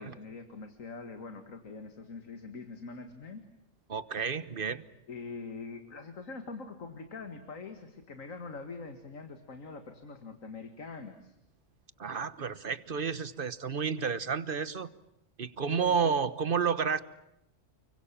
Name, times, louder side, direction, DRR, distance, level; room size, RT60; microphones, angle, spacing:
voice 1, 0.0-3.5 5.1-11.4 15.7-16.2, left 4 dB, 85° left, 7 dB, 2.3 m, -44 dB
voice 2, 3.9-4.8 12.0-14.9 15.4-17.0, right 6 dB, 45° right, 14 dB, 1.3 m, -31 dB
29.5 x 24.0 x 7.4 m, 0.85 s
omnidirectional pair, 1.3 m